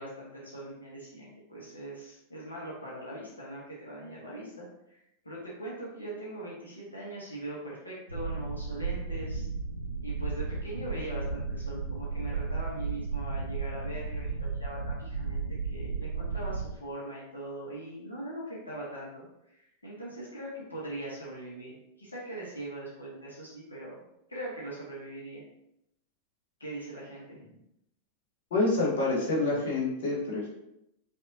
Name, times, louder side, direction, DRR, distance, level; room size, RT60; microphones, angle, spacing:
voice 1, 0.0-9.5 10.0-24.0 24.3-25.4 26.6-27.6 29.5-29.6, right 1 dB, 80° left, -6 dB, 1.1 m, -41 dB
sound 1, 8.1-16.8, right 4 dB, 85° right, 0.3 m, -34 dB
voice 2, 28.5-30.5, left 2 dB, 60° left, -4 dB, 1.3 m, -27 dB
5.2 x 2.7 x 2.7 m, 0.81 s
figure-of-eight pair, 90°, 0 cm